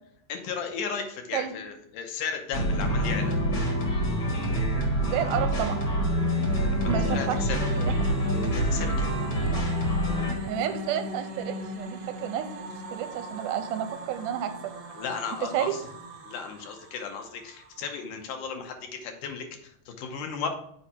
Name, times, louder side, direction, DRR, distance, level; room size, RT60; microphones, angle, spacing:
voice 1, 0.3-3.4 6.6-7.6 8.4-9.1 14.9-15.8 16.3-20.5, left 6 dB, 80° left, 5 dB, 2.3 m, -35 dB
sound 1, 2.5-10.3, equal, 50° left, 1.3 m, -26 dB
sound 2, 4.6-17.8, left 1 dB, 60° right, 1.4 m, -38 dB
voice 2, 5.0-5.8 6.9-8.0 10.4-14.5 15.5-15.7, right 10 dB, 85° right, 8 dB, 2.1 m, -31 dB
7.1 x 4.5 x 4.2 m, 0.68 s
omnidirectional pair, 3.8 m